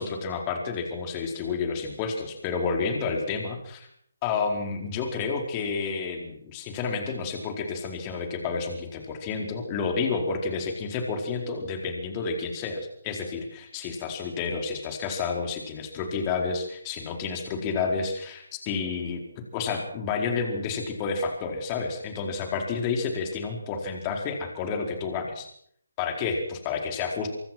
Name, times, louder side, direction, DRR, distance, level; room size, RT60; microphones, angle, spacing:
voice 1, 0.0-3.9 4.2-19.2 19.5-25.5 26.0-27.3, left 5 dB, 25° left, 3 dB, 4.5 m, -30 dB
25.5 x 23.0 x 6.2 m, 0.67 s
figure-of-eight pair, 150°, 0 cm